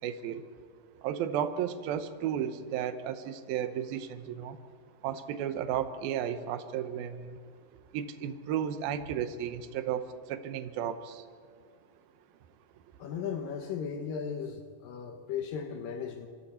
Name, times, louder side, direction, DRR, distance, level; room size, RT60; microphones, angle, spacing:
voice 1, 0.0-0.5 1.0-4.6 5.0-7.4 7.9-11.3, right 9 dB, 80° right, 9 dB, 2.8 m, -33 dB
voice 2, 13.0-16.3, left 7 dB, 70° left, 5 dB, 2.7 m, -36 dB
26.0 x 26.0 x 4.4 m, 2.1 s
omnidirectional pair, 4.2 m